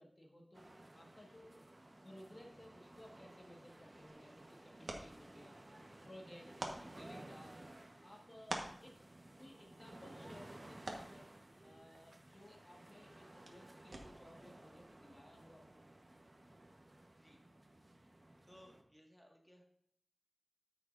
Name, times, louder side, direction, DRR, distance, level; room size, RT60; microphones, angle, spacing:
voice 1, 0.0-1.6 2.0-5.8 6.0-7.6 8.0-9.1 9.4-11.3 11.6-15.9, left 1 dB, 40° left, 0 dB, 1.6 m, -59 dB
sound 1, 0.5-18.8, right 1 dB, 45° right, 1.1 m, -57 dB
sound 2, 3.7-14.4, right 2 dB, 85° right, 1.3 m, -52 dB
voice 2, 18.5-19.7, equal, ahead, 0 dB, 1.8 m, -62 dB
13.5 x 6.3 x 2.6 m, 0.68 s
wide cardioid pair, 65°, 0 cm